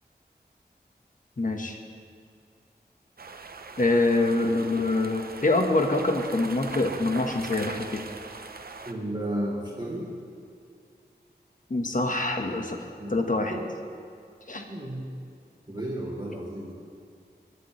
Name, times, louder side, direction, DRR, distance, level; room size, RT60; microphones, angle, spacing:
voice 1, 1.4-1.8 3.8-8.0 11.7-13.6 14.5-14.6, left 2 dB, 50° left, 3 dB, 1.4 m, -25 dB
sound 1, 3.2-8.9, right 4 dB, 60° right, 0.8 m, -41 dB
voice 2, 8.8-10.1 13.0-13.1 13.5-13.6 14.5-15.1 15.7-16.7, right 1 dB, 25° right, -5 dB, 3.3 m, -33 dB
20.5 x 11.5 x 3.3 m, 2.3 s
wide cardioid pair, 50°, 17 cm